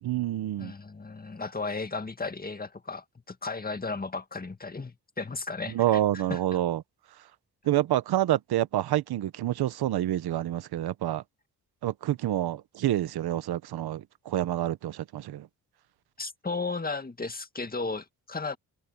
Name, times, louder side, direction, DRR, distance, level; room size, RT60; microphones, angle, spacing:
voice 1, 0.0-0.7 5.7-6.8 7.6-11.2 11.8-15.5, right 13 dB, 85° right, 1.1 m, -28 dB
voice 2, 0.6-6.4 16.2-18.6, left 3 dB, 25° left, 2.0 m, -35 dB
cardioid pair, 75°, 37 cm